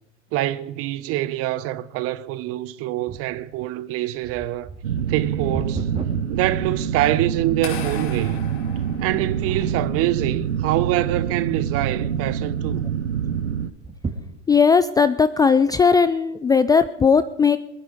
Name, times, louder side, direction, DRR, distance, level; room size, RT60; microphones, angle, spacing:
voice 1, 0.3-4.7 5.1-5.9 6.3-8.5 9.0-12.8, right 15 dB, 40° right, 0.9 m, -25 dB
sound 1, 3.1-7.5 8.1-8.2 8.9-9.2 9.5-10.1 10.7-11.4 11.7-11.8 12.1-12.2 13.7-14.8 15.4-15.5, right 4 dB, 15° right, 2.4 m, -35 dB
sound 2, 4.8-13.7, right 8 dB, 80° right, 1.0 m, -26 dB
sound 3, 7.6-9.7, left 7 dB, 60° left, 2.6 m, -36 dB
voice 2, 14.5-17.6, left 5 dB, 10° left, 0.4 m, -17 dB
22.5 x 9.4 x 5.1 m
figure-of-eight pair, 85°, 35 cm